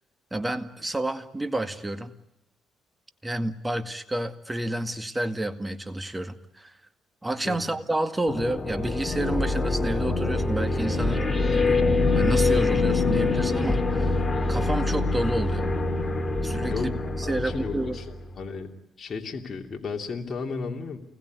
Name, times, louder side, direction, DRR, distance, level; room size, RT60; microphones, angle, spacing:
voice 1, 0.3-2.1 3.2-6.7 7.2-11.6 12.1-14.2 14.5-15.7 16.4-18.0, right 1 dB, 15° right, 9 dB, 2.0 m, -30 dB
sound 1, 8.3-18.5, left 3 dB, 25° left, 2.9 m, -25 dB
voice 2, 17.2-18.0 18.3-18.7 19.0-21.0, left 4 dB, 45° left, 1 dB, 2.9 m, -34 dB
29.0 x 21.0 x 9.6 m, 0.90 s
cardioid pair, 90°, 0 cm